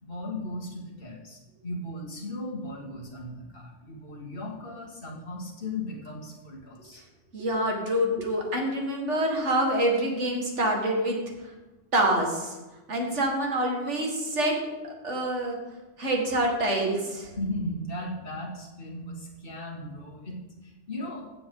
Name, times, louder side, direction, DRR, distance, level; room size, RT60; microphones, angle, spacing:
voice 1, 0.0-7.0 17.4-21.3, left 1 dB, 50° left, -3 dB, 2.2 m, -37 dB
voice 2, 7.3-11.2 11.9-12.6 12.9-14.6 14.8-15.6 16.0-17.3, right 1 dB, 75° right, 1 dB, 2.2 m, -26 dB
16.0 x 7.0 x 3.8 m, 1.1 s
omnidirectional pair, 1.2 m